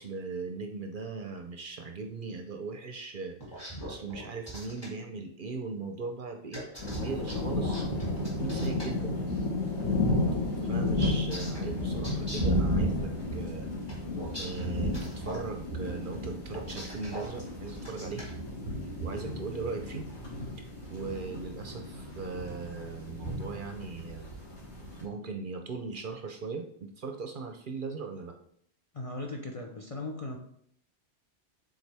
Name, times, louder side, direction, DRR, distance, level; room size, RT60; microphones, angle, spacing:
voice 1, 0.0-9.5 10.6-13.7 14.4-18.2 19.0-20.1 20.6-24.3 25.0-28.3, right 4 dB, 55° right, 5 dB, 0.7 m, -39 dB
sound 1, 3.4-4.9 6.5-8.9 11.0-12.6 13.9-15.4 16.4-17.3 17.7-18.3, equal, 20° left, 2.0 m, -41 dB
sound 2, 6.8-25.0, left 1 dB, 70° left, 2.9 m, -33 dB
voice 2, 28.9-30.4, left 2 dB, 40° left, 1 dB, 0.6 m, -38 dB
7.2 x 3.9 x 3.4 m, 0.66 s
omnidirectional pair, 1.2 m